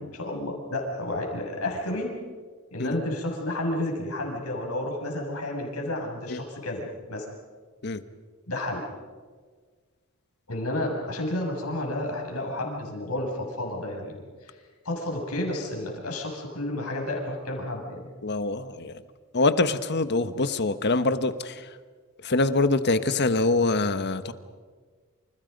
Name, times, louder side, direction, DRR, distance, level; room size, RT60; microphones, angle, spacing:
voice 1, 0.0-2.1 2.7-7.3 8.5-8.8 10.5-14.6 14.9-18.1, left 1 dB, 85° left, 1 dB, 6.9 m, -31 dB
voice 2, 18.2-19.0 19.3-21.7 22.2-24.3, left 3 dB, 50° left, 11 dB, 1.2 m, -24 dB
29.0 x 28.5 x 5.4 m, 1.5 s
head